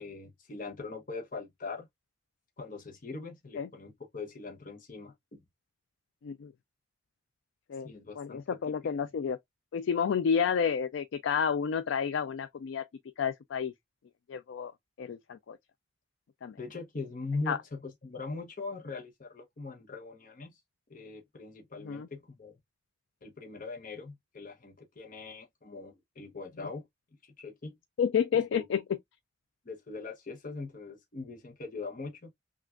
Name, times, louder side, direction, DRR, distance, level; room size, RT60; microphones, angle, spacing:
voice 1, 0.0-1.9 2.6-5.4 7.8-8.9 16.6-20.6 20.9-22.6 23.2-26.8 27.2-27.7 28.3-28.6 29.6-32.3, left 3 dB, 45° left, 0.8 m, -41 dB
voice 2, 8.2-9.4 9.7-12.8 13.2-13.7 14.3-14.7 15.0-15.6 16.4-16.6 17.5-17.6 21.9-22.1 28.0-28.8, left 7 dB, 90° left, 0.4 m, -30 dB
5.8 x 2.4 x 2.3 m
head